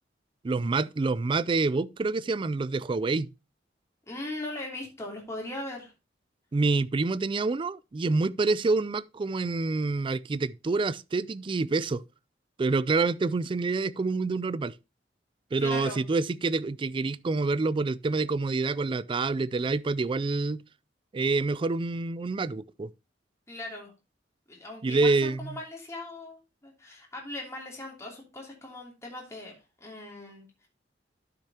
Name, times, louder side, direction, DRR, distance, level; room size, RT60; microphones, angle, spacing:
voice 1, 0.4-3.3 6.5-12.0 12.6-14.7 15.5-20.6 21.1-22.9 24.8-25.6, right 3 dB, 30° right, 0.3 m, -27 dB
voice 2, 4.1-5.9 15.6-16.0 23.5-23.9 24.5-29.5 29.8-30.7, left 2 dB, 15° left, 2.8 m, -39 dB
11.5 x 6.5 x 2.8 m
head